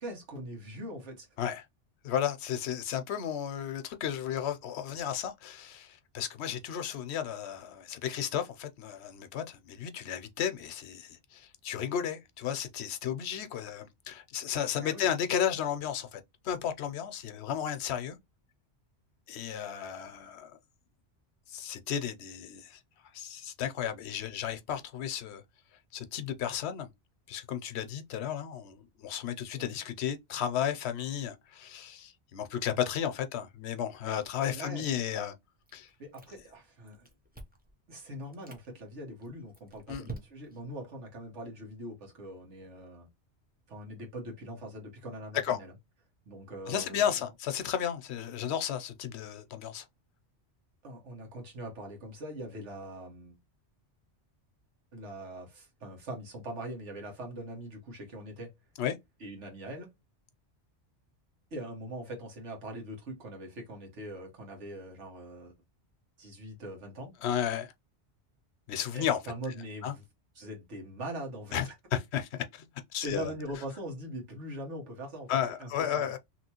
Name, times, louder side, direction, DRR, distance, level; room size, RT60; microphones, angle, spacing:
voice 1, 0.0-1.3 14.8-15.1 29.5-29.8 34.5-34.9 36.0-37.1 37.9-43.1 43.7-45.7 46.3-47.1 50.8-53.4 54.9-58.5 59.2-59.9 61.5-65.5 66.2-67.1 68.9-70.0 70.3-71.7 73.0-76.1, right 1 dB, 90° right, 1.6 m, -42 dB
voice 2, 2.0-18.2 19.3-20.6 21.5-22.8 23.1-25.4 25.9-26.9 27.3-35.4 35.7-35.9 39.9-40.0 45.4-45.6 46.7-49.8 58.8-59.0 67.2-67.7 68.7-69.2 69.8-69.9 71.5-71.6 71.9-72.6 72.9-73.3 75.3-76.2, left 9 dB, 70° left, 0.9 m, -33 dB
Chewing mastication, 35.7-36.6 36.9-37.7 38.2-38.7 39.2-40.7, right 3 dB, 10° right, 0.5 m, -46 dB
3.0 x 2.9 x 2.9 m
omnidirectional pair, 1.2 m